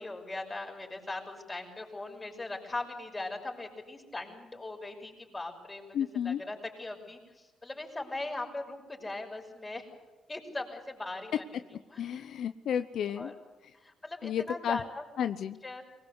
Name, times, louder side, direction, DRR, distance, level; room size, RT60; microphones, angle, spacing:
voice 1, 0.0-9.8 10.3-12.2 13.1-13.3 13.7-15.0 15.6-15.8, left 2 dB, 20° left, 2 dB, 6.3 m, -40 dB
voice 2, 5.9-6.4 12.0-13.3 14.2-14.8 15.2-15.6, left 9 dB, 70° left, 11 dB, 0.8 m, -32 dB
23.5 x 20.0 x 8.2 m, 1.2 s
cardioid pair, 90°, 0 cm